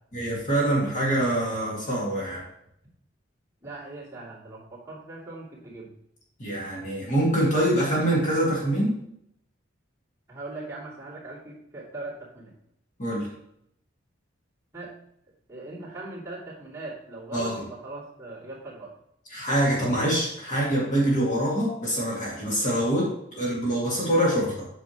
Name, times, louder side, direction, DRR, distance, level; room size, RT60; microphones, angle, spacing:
voice 1, 0.1-2.4 6.4-9.0 13.0-13.3 17.3-17.6 19.3-24.7, right 1 dB, 40° left, -4 dB, 2.1 m, -25 dB
voice 2, 3.6-5.9 10.3-12.5 14.7-15.0 15.5-18.9, right 2 dB, 15° right, -9 dB, 2.6 m, -40 dB
8.1 x 6.2 x 3.0 m, 0.74 s
head